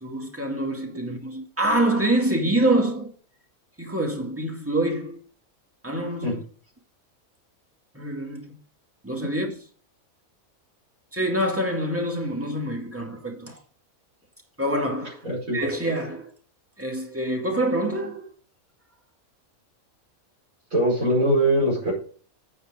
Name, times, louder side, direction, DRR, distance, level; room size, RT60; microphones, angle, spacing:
voice 1, 0.0-3.1 3.8-5.2 5.8-6.4 7.9-8.5 9.0-9.5 11.1-13.6 14.6-15.2 15.5-16.3 16.8-18.3, right 1 dB, 10° right, 2.4 m, -26 dB
voice 2, 15.2-15.6 20.7-21.9, right 1 dB, 70° right, 5.5 m, -22 dB
8.8 x 8.3 x 5.2 m
omnidirectional pair, 1.5 m